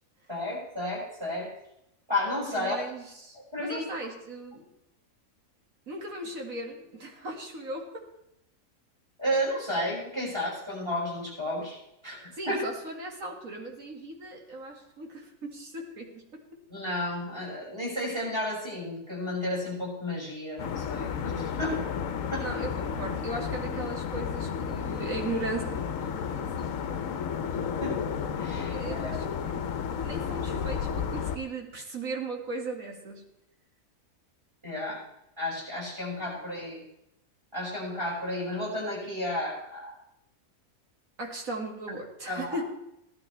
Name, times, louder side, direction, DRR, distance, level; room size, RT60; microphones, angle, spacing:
voice 1, 0.3-1.5 2.1-2.8 3.5-3.8 9.2-11.8 12.0-12.6 16.7-21.8 22.3-22.5 27.8-27.9 28.4-29.1 34.6-35.0 35.4-36.8 37.5-40.0 42.3-42.6, left 1 dB, 20° right, -5 dB, 5.9 m, -32 dB
voice 2, 2.5-4.6 5.9-8.1 12.3-16.4 22.4-26.7 28.7-29.7 30.0-33.3 41.2-42.6, right 2 dB, 70° right, 1 dB, 2.4 m, -37 dB
sound 1, 20.6-31.4, left 7 dB, 70° left, 1.1 m, -32 dB
17.0 x 12.0 x 3.3 m, 0.82 s
omnidirectional pair, 1.5 m